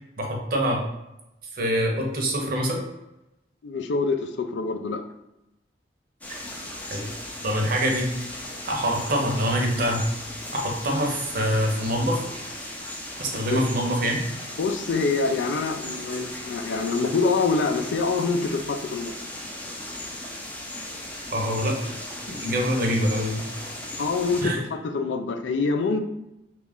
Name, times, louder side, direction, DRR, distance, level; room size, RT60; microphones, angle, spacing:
voice 1, 0.2-0.8 1.5-2.8 6.9-7.1 7.4-8.1 8.7-10.0 10.5-12.2 13.2-14.2 21.3-21.8 22.3-23.4 24.4-24.6, equal, 55° right, 1 dB, 0.8 m, -25 dB
voice 2, 3.6-5.0 13.3-13.6 14.6-19.1 24.0-26.0, left 4 dB, 80° left, 7 dB, 0.4 m, -25 dB
sound 1, 6.2-24.5, left 1 dB, 10° left, 0.4 m, -37 dB
3.1 x 2.4 x 3.6 m, 0.91 s
head